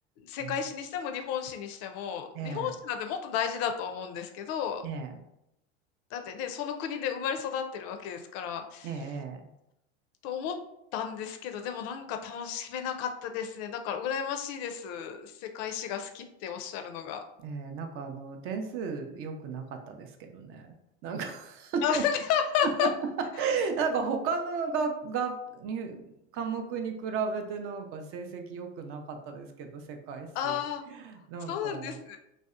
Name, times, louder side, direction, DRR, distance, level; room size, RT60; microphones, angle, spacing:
voice 1, 0.2-4.8 6.1-8.9 10.2-10.6 10.9-17.2 21.8-22.9 30.3-30.8 31.5-32.2, left 8 dB, 50° left, 6 dB, 0.4 m, -33 dB
voice 2, 2.3-2.7 4.8-5.1 8.8-9.4 17.4-20.7 21.0-22.0 22.8-22.9 23.4-32.0, right 5 dB, 40° right, 5 dB, 0.5 m, -34 dB
2.6 x 2.1 x 2.4 m, 0.82 s
hypercardioid pair, 105°, 34 cm